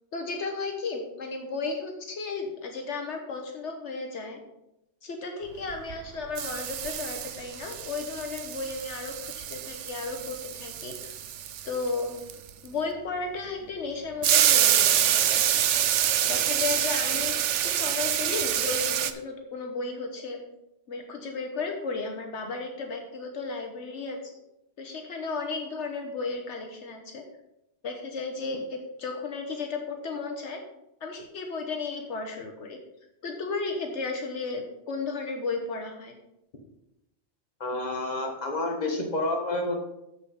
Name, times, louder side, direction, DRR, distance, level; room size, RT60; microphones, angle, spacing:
voice 1, 0.1-4.4 5.0-11.1 11.6-12.1 12.6-15.6 16.2-17.3 17.6-20.4 20.9-24.2 24.8-27.2 27.8-30.6 31.0-32.8 33.2-36.1, left 4 dB, 75° left, 3 dB, 1.3 m, -34 dB
sound 1, 5.7-6.1 6.4-12.7 14.2-19.1, right 10 dB, 80° right, 1.0 m, -26 dB
voice 2, 37.6-39.8, left 2 dB, 35° left, 1 dB, 1.7 m, -29 dB
7.3 x 7.2 x 5.6 m, 0.88 s
omnidirectional pair, 1.2 m